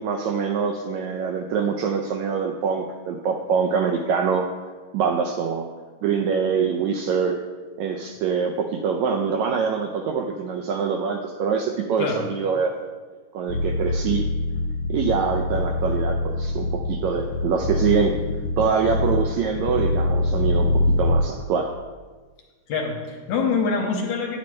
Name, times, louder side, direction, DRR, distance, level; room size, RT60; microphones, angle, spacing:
voice 1, 0.0-4.5 4.9-5.7 6.0-7.4 7.8-12.9 13.3-14.2 14.9-18.2 18.6-21.7, right 6 dB, 80° right, 3 dB, 1.6 m, -24 dB
sound 1, 13.5-21.2, left 2 dB, 85° left, 2.1 m, -24 dB
voice 2, 22.7-24.4, left 4 dB, 70° left, 1 dB, 2.3 m, -25 dB
9.8 x 8.6 x 3.2 m, 1.4 s
omnidirectional pair, 3.7 m